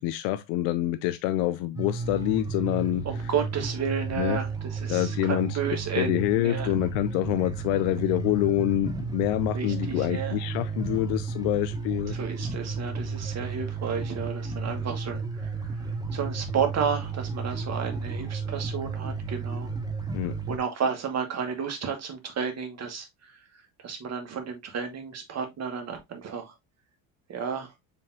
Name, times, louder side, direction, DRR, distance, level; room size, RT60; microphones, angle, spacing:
voice 1, 0.0-3.0 4.2-4.4 4.9-5.6 5.9-12.2 20.1-20.4, left 14 dB, 75° left, 0.6 m, -26 dB
sound 1, 1.8-20.6, right 4 dB, 10° right, 0.8 m, -33 dB
voice 2, 3.0-6.7 9.5-10.4 12.1-15.8 16.1-19.7 20.5-23.4 23.8-26.5 27.3-27.7, right 6 dB, 35° right, 1.6 m, -32 dB
sound 2, 6.6-10.8, left 1 dB, 15° left, 1.4 m, -50 dB
5.2 x 3.5 x 2.7 m
supercardioid pair, 100°, 43 cm